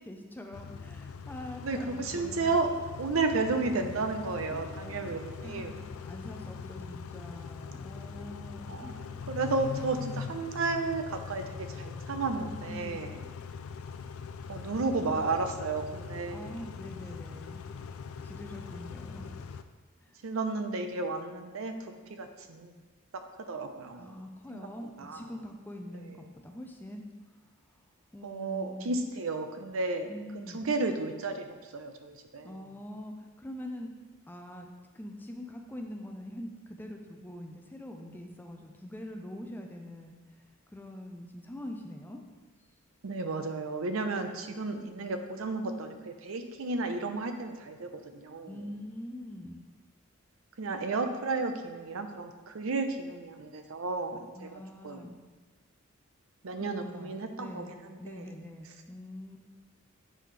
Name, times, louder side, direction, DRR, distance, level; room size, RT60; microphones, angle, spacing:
voice 1, 0.0-2.5 4.5-8.9 12.4-13.0 16.3-17.7 18.2-19.4 20.0-20.2 23.9-27.1 28.1-29.0 30.1-30.7 32.4-33.9 34.3-34.7 34.9-40.2 40.7-42.2 45.4-45.8 48.5-49.6 54.2-55.2 56.6-59.4, left 1 dB, 10° left, 3 dB, 0.4 m, -44 dB
Car / Idling / Accelerating revving vroom, 0.5-19.6, left 5 dB, 75° left, 0.4 m, -42 dB
voice 2, 1.6-2.7 3.0-5.8 8.7-13.2 14.5-16.6 20.2-21.9 22.2-22.7 23.5-24.2 24.5-24.7 25.0-25.3 28.2-30.1 30.5-32.6 43.0-48.6 50.6-55.1 56.4-58.2, right 3 dB, 70° right, 6 dB, 0.6 m, -33 dB
7.6 x 5.0 x 3.3 m, 1.3 s
head